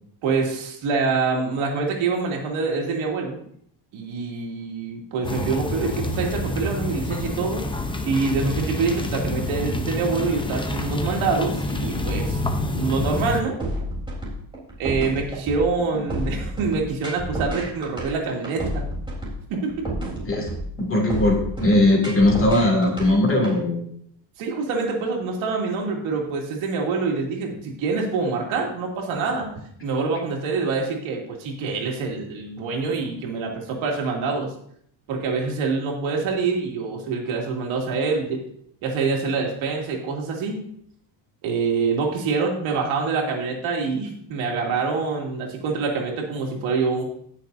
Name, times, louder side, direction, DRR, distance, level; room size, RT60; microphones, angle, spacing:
voice 1, 0.2-3.4 3.9-7.7 8.0-13.6 14.8-18.8 19.5-19.7 24.4-29.5 29.8-34.5 35.1-38.4 38.8-40.7 41.4-47.0, right 4 dB, 85° right, 0 dB, 2.7 m, -25 dB
sound 1, 5.2-13.4, left 1 dB, 10° left, 0.8 m, -27 dB
sound 2, 13.6-23.5, right 1 dB, 10° right, 3.7 m, -30 dB
voice 2, 20.2-23.8, left 1 dB, 25° left, 0 dB, 2.7 m, -19 dB
19.5 x 6.5 x 2.7 m, 0.66 s
cardioid pair, 140°, 46 cm